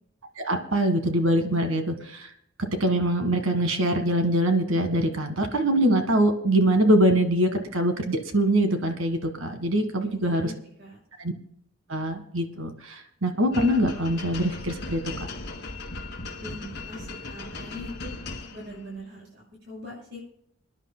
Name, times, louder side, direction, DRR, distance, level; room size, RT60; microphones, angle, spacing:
voice 1, 0.4-2.3 2.8-10.5 11.2-11.3 11.9-15.0, right 1 dB, 80° right, 6 dB, 1.7 m, -23 dB
voice 2, 10.0-11.0 16.4-18.2 18.5-20.2, left 1 dB, 60° right, -2 dB, 6.2 m, -42 dB
sound 1, 13.5-18.9, left 3 dB, 55° left, 1.6 m, -38 dB
28.0 x 10.5 x 2.2 m, 0.71 s
head